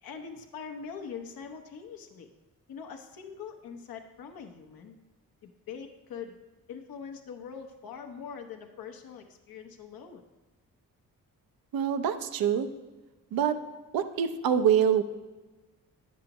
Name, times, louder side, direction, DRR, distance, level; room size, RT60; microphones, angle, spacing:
voice 1, 0.0-2.3 2.7-5.0 5.4-6.3 6.7-10.2, left 6 dB, 80° left, 4 dB, 1.0 m, -43 dB
voice 2, 11.7-12.7 13.3-13.6 13.9-15.0, right 8 dB, 80° right, 10 dB, 0.6 m, -25 dB
10.5 x 7.4 x 3.0 m, 1.2 s
cardioid pair, 60°, 35 cm